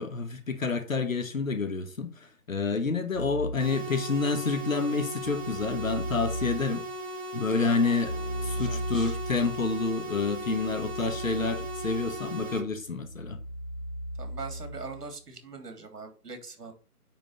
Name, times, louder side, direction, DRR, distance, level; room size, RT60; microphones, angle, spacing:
voice 1, 0.0-6.8 7.3-8.1 8.4-13.4, left 4 dB, 55° left, 1.5 m, -29 dB
Keyboard (musical), 3.1-3.8 5.2-6.8 8.0-15.1, equal, 30° left, 2.3 m, -37 dB
sound 1, 3.6-12.6, equal, 40° right, 4.1 m, -38 dB
voice 2, 8.6-9.2 14.2-16.7, right 4 dB, 75° right, 3.2 m, -42 dB
9.1 x 4.1 x 5.3 m
hypercardioid pair, 175°, 47 cm